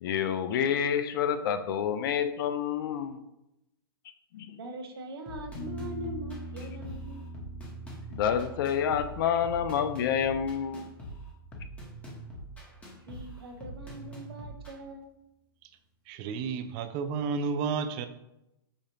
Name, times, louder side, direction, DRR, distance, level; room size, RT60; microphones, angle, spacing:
voice 1, 0.0-3.2 4.3-4.5 8.1-10.9, left 8 dB, 60° left, 0.4 m, -28 dB
voice 2, 4.6-7.2 13.1-15.1, right 1 dB, 75° right, 0.8 m, -42 dB
sound 1, 5.3-14.8, right 1 dB, 10° left, 1.0 m, -44 dB
sound 2, 5.6-13.2 16.2-16.3, equal, 40° left, 0.9 m, -45 dB
voice 3, 16.1-18.1, right 5 dB, 35° right, 0.3 m, -31 dB
4.9 x 2.5 x 2.8 m
hypercardioid pair, 135°, 13 cm